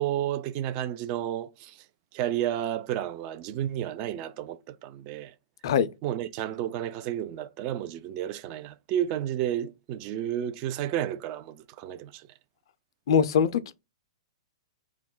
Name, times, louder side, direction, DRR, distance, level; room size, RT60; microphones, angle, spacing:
voice 1, 0.0-1.8 2.1-5.3 6.0-12.3, right 11 dB, 40° right, 0.3 m, -31 dB
voice 2, 13.1-13.8, left 7 dB, 65° left, 0.3 m, -22 dB
2.3 x 2.1 x 3.8 m
hypercardioid pair, 130°, 3 cm